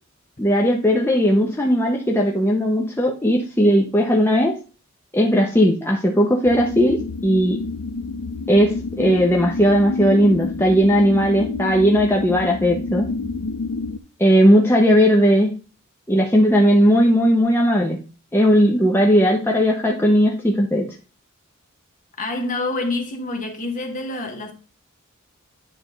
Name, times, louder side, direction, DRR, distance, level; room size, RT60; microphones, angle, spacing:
voice 1, 0.4-4.5 5.1-7.6 8.5-13.1 14.2-15.5 16.1-18.0 18.3-20.9, equal, 10° left, 0.8 m, -17 dB
sound 1, 6.5-14.0, left 3 dB, 80° left, 0.5 m, -29 dB
voice 2, 22.2-24.5, left 2 dB, 40° left, 1.2 m, -27 dB
9.1 x 3.5 x 3.9 m
head